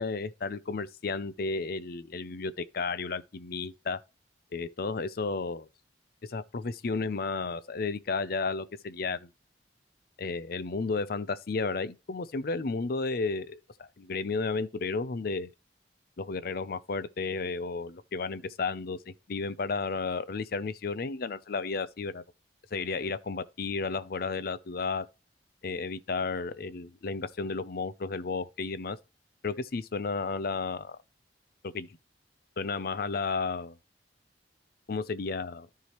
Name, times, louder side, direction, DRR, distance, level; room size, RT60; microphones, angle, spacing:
voice 1, 0.0-4.0 4.5-5.7 6.3-9.3 10.2-15.5 16.2-22.2 22.7-25.0 25.6-29.0 29.4-31.0 31.6-31.9 32.6-33.8 34.9-35.7, left 4 dB, 60° left, 0.6 m, -33 dB
13.5 x 4.7 x 3.0 m
head